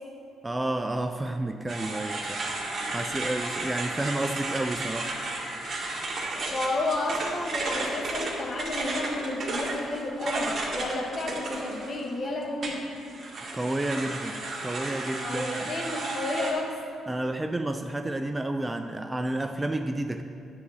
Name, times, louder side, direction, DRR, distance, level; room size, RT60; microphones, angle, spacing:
voice 1, 0.4-2.4 2.9-5.1 13.5-15.7 17.1-20.2, right 1 dB, 15° right, 7 dB, 0.4 m, -30 dB
sound 1, 1.7-12.1 12.6-16.5, right 2 dB, 45° right, 1.6 m, -33 dB
voice 2, 6.5-12.9 15.2-16.8, left 2 dB, 40° left, 1 dB, 1.3 m, -31 dB
9.7 x 3.9 x 7.0 m, 2.4 s
cardioid pair, 90°, 0 cm